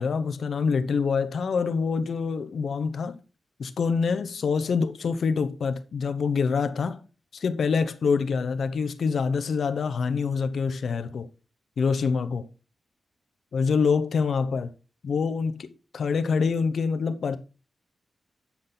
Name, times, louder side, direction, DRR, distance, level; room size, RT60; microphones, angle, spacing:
voice 1, 0.0-3.2 3.6-7.0 7.3-11.3 11.8-12.5 13.5-14.7 15.0-17.4, left 5 dB, 75° left, 0.9 m, -26 dB
8.6 x 7.8 x 4.0 m
cardioid pair, 75°, 0 cm